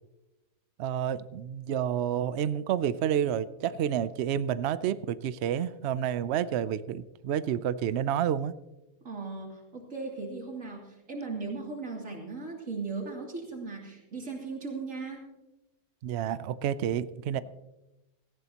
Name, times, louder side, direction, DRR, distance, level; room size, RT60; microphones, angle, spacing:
voice 1, 0.8-8.5 16.0-17.4, right 9 dB, 80° right, 15 dB, 0.5 m, -29 dB
voice 2, 9.0-15.3, right 4 dB, 50° right, -1 dB, 3.2 m, -37 dB
18.0 x 14.5 x 2.9 m, 1.0 s
omnidirectional pair, 1.7 m